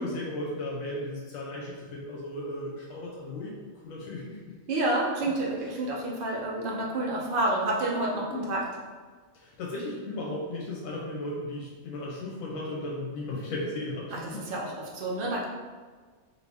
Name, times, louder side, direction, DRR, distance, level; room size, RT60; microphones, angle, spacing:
voice 1, 0.0-3.5 3.8-4.6 8.3-8.5 9.3-14.5, left 1 dB, 85° left, -4 dB, 1.0 m, -35 dB
voice 2, 4.7-8.7 14.1-15.5, right 2 dB, 50° right, -3 dB, 0.7 m, -29 dB
2.8 x 2.6 x 3.3 m, 1.5 s
omnidirectional pair, 1.4 m